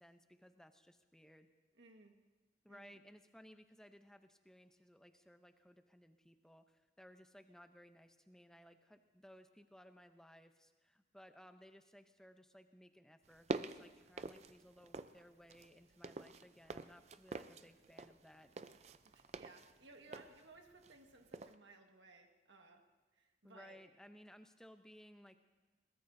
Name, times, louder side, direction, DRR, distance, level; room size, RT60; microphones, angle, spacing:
voice 1, 0.0-1.5 2.6-18.5 23.4-25.4, equal, 5° left, 7 dB, 0.6 m, -61 dB
voice 2, 1.8-2.1 2.7-3.1 19.0-22.8 23.1-23.8, right 3 dB, 90° right, 3 dB, 1.5 m, -61 dB
sound 1, 13.2-15.2 15.5-21.1 21.3-21.5, right 3 dB, 35° right, 0.4 m, -46 dB
22.5 x 19.5 x 2.7 m, 1.2 s
head